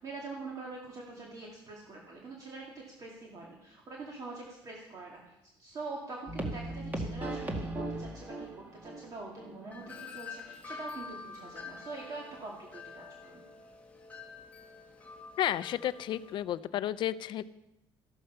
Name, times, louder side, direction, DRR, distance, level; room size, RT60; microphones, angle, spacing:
voice 1, 0.0-13.4, right 3 dB, 35° right, -2 dB, 2.3 m, -44 dB
sound 1, 6.3-9.0 9.4-9.5 9.9-10.0, right 1 dB, 15° right, 1.9 m, -37 dB
Wind chime, 9.7-16.4, left 4 dB, 15° left, 1.4 m, -47 dB
voice 2, 15.4-17.4, left 12 dB, 50° left, 15 dB, 0.6 m, -32 dB
14.0 x 13.5 x 5.7 m, 0.88 s
cardioid pair, 160°, 10 cm